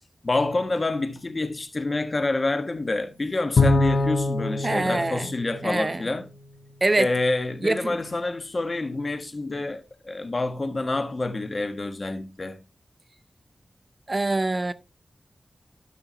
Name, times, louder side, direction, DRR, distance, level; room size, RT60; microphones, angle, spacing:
voice 1, 0.2-6.3 7.0-12.6, left 2 dB, 50° left, 1.4 m, -27 dB
Bowed string instrument, 3.6-6.2, left 2 dB, 80° left, 0.8 m, -24 dB
voice 2, 4.6-5.3 5.6-6.0 6.8-7.1 7.6-8.0 14.1-14.7, right 2 dB, 40° right, 0.6 m, -24 dB
13.0 x 6.0 x 2.8 m
cardioid pair, 55°, 0 cm